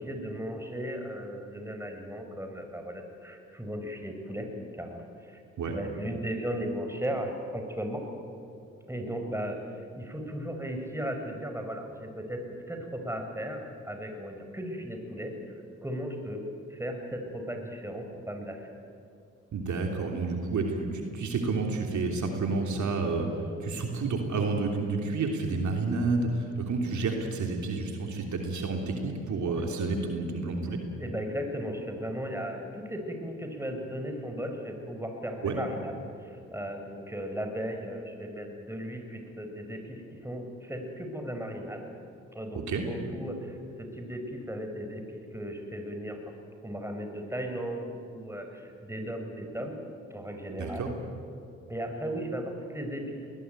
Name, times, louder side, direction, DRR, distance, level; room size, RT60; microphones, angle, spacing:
voice 1, 0.0-5.4 5.7-8.1 8.9-9.7 9.9-15.5 15.8-18.7 29.3-29.6 31.0-41.9 42.3-46.3 46.6-49.8 50.1-50.9 51.7-53.3, equal, 10° right, 4 dB, 5.4 m, -36 dB
voice 2, 19.5-30.8 35.4-35.6 42.5-42.8 50.6-50.9, right 3 dB, 65° right, 2 dB, 3.2 m, -30 dB
20.5 x 20.0 x 9.1 m, 2.6 s
supercardioid pair, 50°, 31 cm